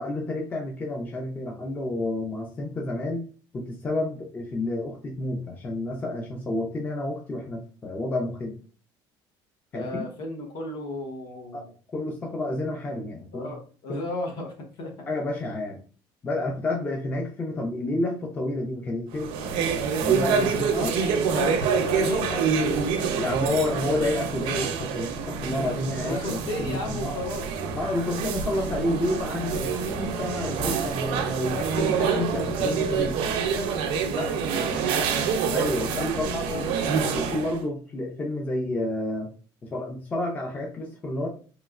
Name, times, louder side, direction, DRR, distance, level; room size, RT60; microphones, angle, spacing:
voice 1, 0.0-8.6 9.7-10.1 11.5-13.5 13.9-14.0 15.1-15.8 16.2-19.3 19.8-20.9 23.1-27.2 27.7-33.4 35.5-36.3 37.0-39.3 39.6-41.3, left 1 dB, 20° left, 1 dB, 0.4 m, -30 dB
voice 2, 9.7-11.7 13.3-15.1 20.6-23.0 26.0-27.5 34.0-35.2 35.9-36.7, left 2 dB, 55° left, 2 dB, 0.9 m, -34 dB
sound 1, 19.1-37.6, right 6 dB, 85° right, 0.5 m, -27 dB
3.0 x 2.8 x 2.4 m, 0.40 s
cardioid pair, 170°, 9 cm